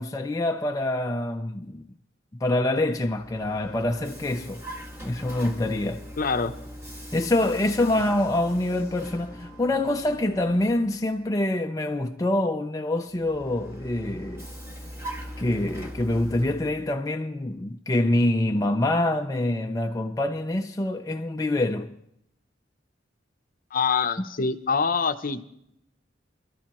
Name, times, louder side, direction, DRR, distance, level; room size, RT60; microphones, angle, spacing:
voice 1, 0.0-1.9 2.4-4.6 5.0-6.1 7.1-14.5 15.4-22.0 24.2-24.5, left 1 dB, 20° left, 0.4 m, -25 dB
Vehicle, 2.9-11.4 13.1-17.0, equal, 15° right, 2.0 m, -41 dB
voice 2, 6.2-6.5 23.7-25.4, left 5 dB, 50° left, 0.7 m, -25 dB
27.0 x 13.0 x 3.0 m
head